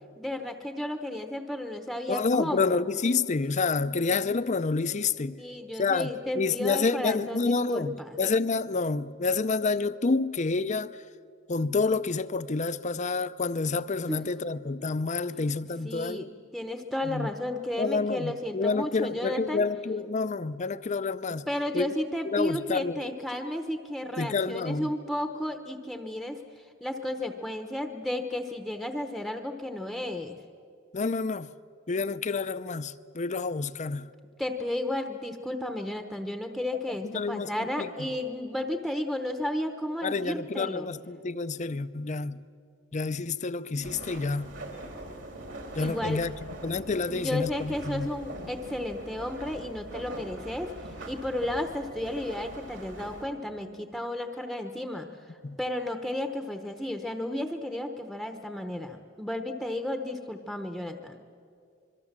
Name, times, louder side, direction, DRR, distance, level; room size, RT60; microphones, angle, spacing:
voice 1, 0.2-2.7 5.4-8.2 14.1-14.2 15.8-16.3 16.5-19.6 21.5-30.4 34.4-40.9 45.8-46.2 47.1-50.7 51.1-55.1 55.6-61.2, left 1 dB, ahead, 0.9 m, -33 dB
voice 2, 2.1-5.3 5.8-6.1 6.4-11.0 11.5-16.3 17.0-17.3 17.8-21.5 21.7-21.9 22.3-23.0 24.2-24.9 30.9-31.5 31.9-34.1 37.0-38.1 40.0-42.4 42.9-44.5 45.8-46.3 46.6-48.1 55.4-55.6, left 4 dB, 40° left, 0.6 m, -28 dB
sound 1, 43.8-53.2, right 1 dB, 70° right, 3.9 m, -42 dB
25.5 x 23.0 x 7.4 m
head